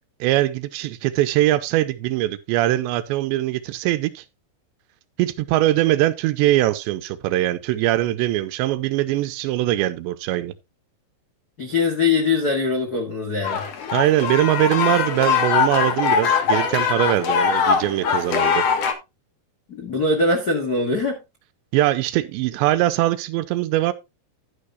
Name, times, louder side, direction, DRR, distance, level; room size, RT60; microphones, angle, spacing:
voice 1, 0.2-4.2 5.2-10.5 13.9-18.7 21.7-23.9, right 15 dB, 85° right, 3.1 m, -21 dB
voice 2, 11.6-13.7 19.7-21.2, left 3 dB, 90° left, 0.8 m, -22 dB
sound 1, 13.4-18.9, left 6 dB, 60° left, 1.7 m, -21 dB
11.5 x 9.8 x 2.4 m
omnidirectional pair, 5.1 m